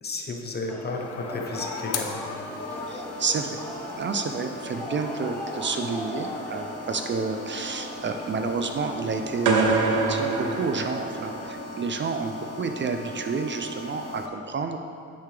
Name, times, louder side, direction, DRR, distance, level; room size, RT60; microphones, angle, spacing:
voice 1, 0.0-2.2, left 2 dB, 35° left, 2 dB, 1.1 m, -33 dB
sound 1, 0.7-14.3, left 2 dB, 55° left, 1.0 m, -38 dB
sound 2, 0.7-11.5, left 1 dB, 5° left, 0.6 m, -40 dB
voice 2, 2.9-3.6 4.0-14.8, right 4 dB, 40° right, 6 dB, 0.5 m, -30 dB
sound 3, 9.5-11.6, right 3 dB, 80° right, 1.0 m, -25 dB
9.5 x 6.9 x 3.4 m, 2.5 s
cardioid pair, 90°, 30 cm